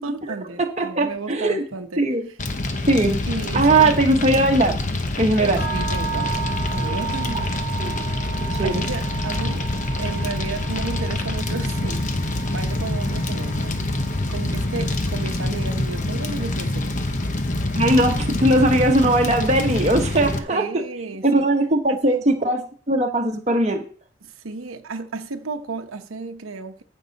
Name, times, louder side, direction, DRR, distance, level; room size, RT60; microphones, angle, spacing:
voice 1, 0.0-2.0 2.3-2.4 3.3-4.0 5.4-7.5 8.6-9.7 10.0-12.2 12.5-13.9 14.3-17.0 20.5-21.5 21.9-22.3 24.2-26.8, right 3 dB, 90° right, 1.0 m, -33 dB
voice 2, 0.6-1.6 2.0-2.3 2.9-3.2 3.5-4.8 5.2-5.6 7.8-8.1 8.6-8.8 17.7-20.8 21.3-23.8, right 1 dB, 35° right, 1.1 m, -19 dB
Fire, 2.4-20.4, left 2 dB, 35° left, 0.9 m, -25 dB
sound 1, 5.6-15.6, right 7 dB, 75° left, 3.1 m, -35 dB
15.0 x 5.6 x 4.1 m
head